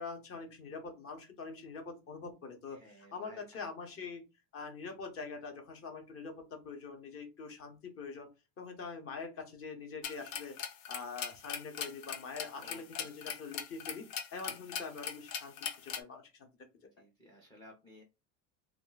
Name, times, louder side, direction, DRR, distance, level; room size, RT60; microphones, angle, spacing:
voice 1, 0.0-4.2 4.5-8.3 8.6-10.6 10.9-14.1 14.3-15.5 15.8-16.5, left 4 dB, 30° left, 5 dB, 0.8 m, -44 dB
voice 2, 2.7-3.4 12.6-13.2 14.5-14.6 17.0-18.0, equal, 10° left, 0 dB, 0.4 m, -56 dB
sound 1, 10.0-16.0, left 8 dB, 85° left, 0.7 m, -41 dB
2.3 x 2.1 x 3.9 m, 0.27 s
supercardioid pair, 130°, 47 cm